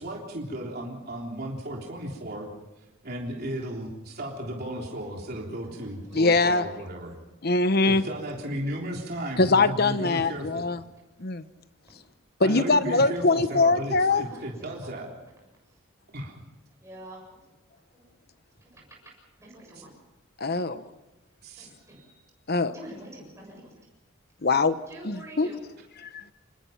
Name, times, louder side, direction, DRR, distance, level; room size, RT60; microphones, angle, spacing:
voice 1, 0.0-2.5 3.0-3.9 4.2-7.1 7.8-10.6 12.4-15.1 16.1-16.3 19.7-19.8 21.4-21.7, right 1 dB, 50° right, -1 dB, 3.5 m, -35 dB
voice 2, 6.1-6.6 7.4-8.0 9.4-10.8 11.2-11.4 12.4-14.2 20.4-20.8 22.5-22.8 24.4-24.8 25.0-25.5 26.0-26.2, left 3 dB, 50° left, 12 dB, 1.0 m, -22 dB
voice 3, 14.1-14.5 16.8-17.2 17.9-18.0 18.6-18.8 19.4-19.9 21.6-22.2 22.7-23.7 24.9-25.6, right 1 dB, 15° right, -2 dB, 7.2 m, -46 dB
26.5 x 20.0 x 5.8 m, 1.0 s
head